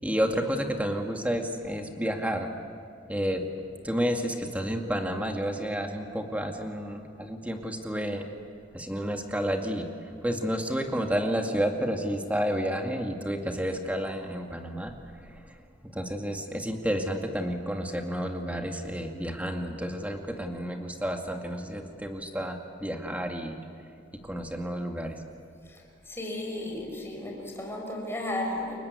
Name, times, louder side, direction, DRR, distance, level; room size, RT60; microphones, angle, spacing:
voice 1, 0.0-2.5 3.1-3.4 3.8-8.3 8.7-14.9 15.2-15.6 15.8-23.6 24.2-25.2, equal, 10° right, 3 dB, 2.2 m, -30 dB
voice 2, 26.1-28.8, left 1 dB, 15° left, 0 dB, 5.7 m, -34 dB
30.0 x 23.0 x 8.3 m, 2.3 s
head